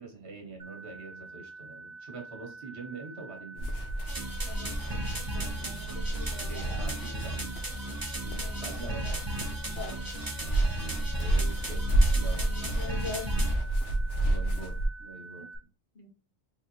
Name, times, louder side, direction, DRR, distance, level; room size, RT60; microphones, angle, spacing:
voice 1, 0.0-3.8 6.1-7.4 8.2-9.2 11.2-11.9 12.1-12.5 12.8-13.0 14.2-15.7, right 3 dB, 65° right, 2 dB, 1.5 m, -44 dB
sound 1, 0.6-15.6, right 3 dB, 45° right, 1.1 m, -47 dB
sound 2, 3.6-14.9, right 1 dB, 80° left, 1.1 m, -30 dB
sound 3, 4.1-13.5, right 1 dB, 20° right, 0.8 m, -36 dB
voice 2, 4.5-6.8 8.3-9.2 9.7-10.2 12.3-13.4 15.4-15.5 15.9-16.1, left 3 dB, 55° left, 0 dB, 1.7 m, -43 dB
3.9 x 3.4 x 2.9 m, 0.33 s
omnidirectional pair, 1.2 m